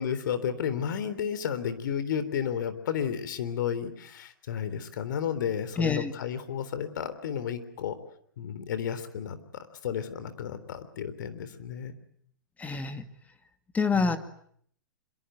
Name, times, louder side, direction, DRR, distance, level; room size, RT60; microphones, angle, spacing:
voice 1, 0.0-8.0 8.4-11.9 13.9-14.2, left 8 dB, 65° left, 13 dB, 3.7 m, -32 dB
voice 2, 5.8-6.1 12.6-13.0 13.7-14.2, left 4 dB, 15° left, 9 dB, 2.2 m, -26 dB
26.5 x 23.0 x 9.3 m, 0.66 s
hypercardioid pair, 120°, 11 cm